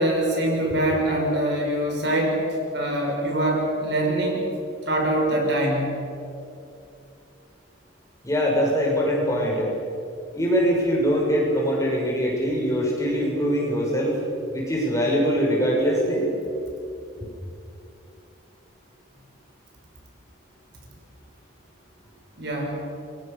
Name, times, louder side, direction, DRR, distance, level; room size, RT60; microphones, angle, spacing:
voice 1, 0.0-2.4 2.7-4.5 4.8-6.0 22.4-22.8, right 1 dB, 55° right, 0 dB, 5.9 m, -23 dB
voice 2, 8.2-9.7 10.3-14.2 14.5-16.3, equal, 15° left, -2 dB, 6.1 m, -23 dB
28.5 x 22.5 x 6.9 m, 2.6 s
head